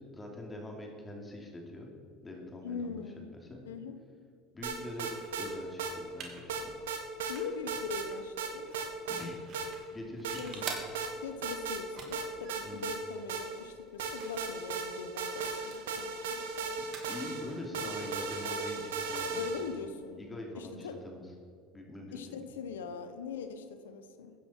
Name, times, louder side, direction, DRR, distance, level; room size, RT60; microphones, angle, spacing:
voice 1, 0.0-1.9 2.2-3.0 3.5-3.6 4.5-5.1 5.4-6.6 9.1-9.4 9.9-10.7 12.6-12.9 16.8-19.8 20.2-21.2 21.7-22.4, left 1 dB, 20° left, 1 dB, 3.0 m, -44 dB
voice 2, 2.6-3.3 3.7-4.0 7.3-8.7 10.4-10.8 11.2-16.8 17.4-18.0 19.3-20.2 20.5-21.0 22.1-24.3, left 5 dB, 85° left, 9 dB, 0.9 m, -42 dB
sound 1, 4.6-5.5 5.8-5.9 6.5-7.4 7.7-8.1 8.4-9.2 9.5-9.7 10.2-11.1 11.4-11.8 12.1-13.7 14.0-19.8, right 5 dB, 85° right, 1.6 m, -36 dB
sound 2, 5.1-20.2, right 5 dB, 55° right, 2.6 m, -50 dB
14.5 x 10.0 x 4.6 m, 2.4 s
hypercardioid pair, 75°, 0 cm